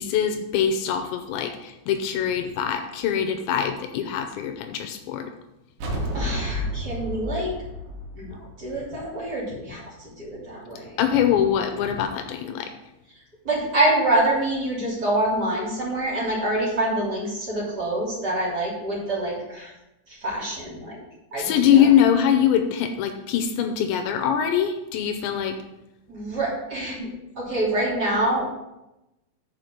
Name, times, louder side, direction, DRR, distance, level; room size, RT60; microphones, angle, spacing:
voice 1, 0.0-5.3 11.0-12.7 21.4-25.6, left 9 dB, 85° left, 6 dB, 2.8 m, -23 dB
sound 1, 5.8-9.2, left 1 dB, 75° right, 3.7 m, -31 dB
voice 2, 6.1-7.5 8.2-9.9 10.2-10.9 13.4-19.7 20.2-21.0 21.3-21.9 25.4-25.5 26.1-27.1 27.4-28.5, right 1 dB, 25° right, -5 dB, 2.8 m, -26 dB
7.1 x 6.1 x 6.7 m, 0.93 s
omnidirectional pair, 5.4 m